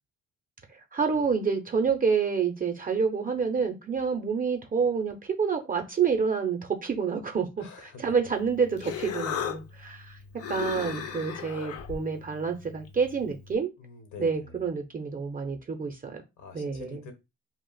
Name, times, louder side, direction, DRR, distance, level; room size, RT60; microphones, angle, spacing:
voice 1, 0.9-10.2 10.5-13.7 14.2-16.2 16.5-17.0, right 5 dB, 30° right, 0.5 m, -28 dB
voice 2, 7.6-8.2 13.8-14.7 16.4-17.1, left 5 dB, 75° left, 1.0 m, -46 dB
Human voice, 8.4-13.6, left 8 dB, 55° left, 0.5 m, -37 dB
2.4 x 2.0 x 3.7 m
cardioid pair, 90°, 30 cm